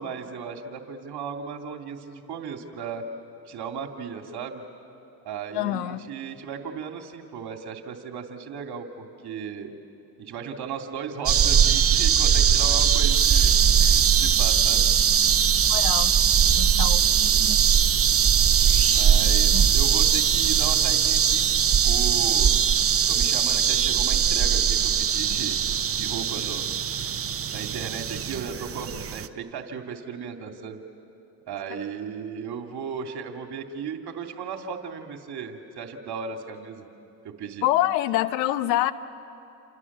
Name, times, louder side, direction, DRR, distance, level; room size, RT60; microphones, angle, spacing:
voice 1, 0.0-3.0 3.5-4.6 5.2-9.7 10.2-13.5 13.8-14.9 18.9-21.5 21.8-22.5 22.8-25.6 25.9-27.2 27.5-30.8 31.5-36.8 37.4-37.6, right 6 dB, 50° right, 4 dB, 2.8 m, -36 dB
voice 2, 5.5-6.0 15.7-16.1 16.6-17.0 19.5-19.7 37.6-38.9, left 14 dB, 85° left, 13 dB, 1.1 m, -25 dB
sound 1, 11.3-29.3, right 8 dB, 30° right, 0.9 m, -21 dB
29.0 x 28.0 x 7.4 m, 2.7 s
hypercardioid pair, 75°, 49 cm